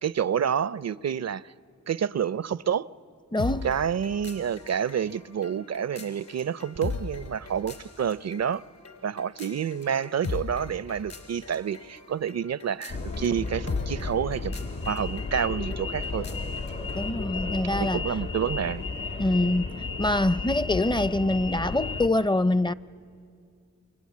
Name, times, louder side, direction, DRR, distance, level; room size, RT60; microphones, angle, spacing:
voice 1, 0.0-1.5 1.9-2.9 3.6-8.6 9.0-14.5 14.9-16.3 17.8-18.8, right 8 dB, 55° right, 0.6 m, -28 dB
voice 2, 3.3-3.7 16.9-18.0 19.2-22.7, left 1 dB, 15° left, 0.6 m, -25 dB
sound 1, 3.4-17.1, left 4 dB, 65° left, 3.8 m, -39 dB
sound 2, 12.9-22.1, left 3 dB, 85° left, 1.6 m, -33 dB
29.0 x 23.5 x 8.5 m
cardioid pair, 50°, 31 cm